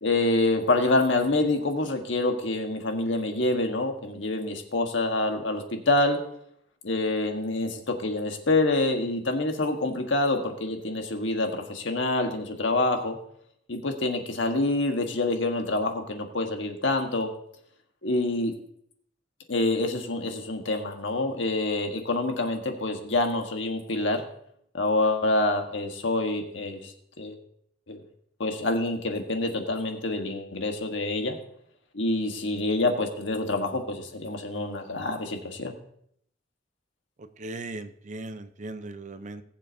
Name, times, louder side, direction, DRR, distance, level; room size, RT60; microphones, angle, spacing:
voice 1, 0.0-6.2 6.8-13.2 13.7-17.3 18.0-18.5 19.5-24.2 24.7-26.9 27.2-27.4 27.9-28.0 28.4-31.4 31.9-35.7, left 2 dB, 80° left, 4 dB, 1.5 m, -26 dB
voice 2, 37.4-39.4, right 2 dB, 40° right, 11 dB, 0.6 m, -38 dB
20.0 x 7.4 x 2.7 m, 0.71 s
head